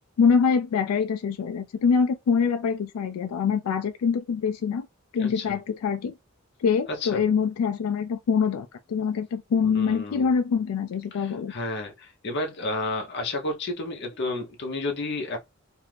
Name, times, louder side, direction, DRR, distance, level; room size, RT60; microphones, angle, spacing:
voice 1, 0.2-4.9 5.1-6.1 6.6-11.5, left 6 dB, 90° left, 0.3 m, -24 dB
voice 2, 6.9-7.2 9.6-10.3 11.2-15.4, left 2 dB, 50° left, 0.7 m, -31 dB
2.6 x 2.4 x 3.2 m
head